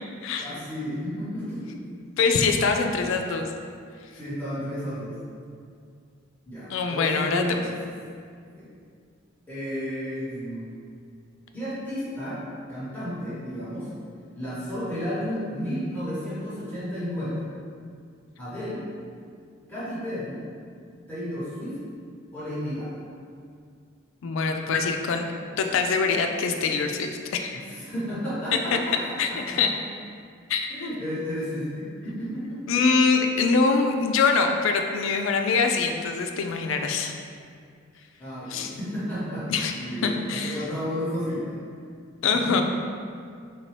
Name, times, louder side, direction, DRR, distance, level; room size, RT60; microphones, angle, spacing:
voice 1, 0.4-1.7 4.1-5.2 6.4-7.7 8.6-8.7 9.5-10.7 11.5-12.4 12.7-13.9 14.3-17.4 18.4-18.8 19.7-20.4 21.1-21.8 22.3-23.0 27.6-29.6 30.7-32.6 38.2-39.5 39.8-41.6 42.5-42.6, equal, 10° left, -12 dB, 1.3 m, -32 dB
voice 2, 2.2-3.5 6.7-7.6 24.2-25.2 25.6-27.6 28.5-28.8 29.2-29.7 30.5-31.0 32.7-37.1 38.5-38.7 39.5-39.7 40.0-40.6 42.2-42.6, left 4 dB, 70° left, 4 dB, 0.3 m, -24 dB
4.3 x 2.6 x 3.2 m, 2.2 s
head